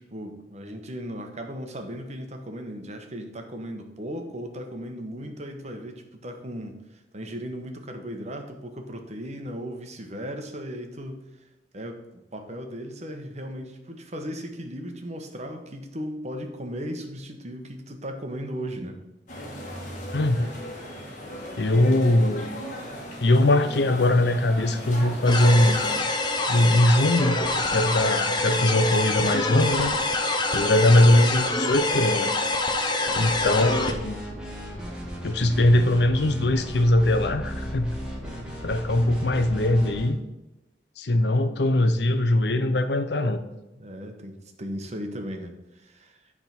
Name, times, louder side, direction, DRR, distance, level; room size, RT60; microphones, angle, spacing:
voice 1, 0.0-11.2 11.7-12.0 12.3-19.0 38.2-38.6 43.7-46.2, equal, 40° right, 5 dB, 1.0 m, -36 dB
sound 1, 19.3-26.0, equal, 45° left, 1.6 m, -37 dB
voice 2, 20.1-20.5 21.6-22.5 23.2-25.9 26.5-29.9 30.5-32.3 33.1-34.2 35.2-38.0 38.6-40.2 41.0-43.4, left 1 dB, 70° left, 10 dB, 0.7 m, -21 dB
sound 2, 25.3-33.9, left 2 dB, 25° left, 0.8 m, -26 dB
sound 3, 33.1-40.1, equal, 5° right, 1.9 m, -36 dB
9.6 x 3.6 x 5.9 m, 0.98 s
head